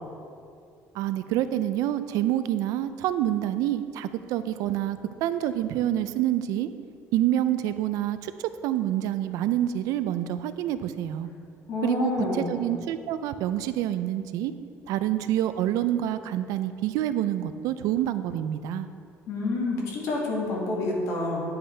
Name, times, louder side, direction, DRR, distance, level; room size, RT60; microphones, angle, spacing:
voice 1, 0.9-6.7 7.1-11.3 11.8-14.5 14.9-18.9, right 12 dB, 85° right, 12 dB, 0.4 m, -27 dB
voice 2, 11.7-12.5 19.3-21.5, left 2 dB, 65° left, -3 dB, 2.0 m, -28 dB
10.0 x 7.7 x 3.4 m, 2.4 s
cardioid pair, 165°, 6 cm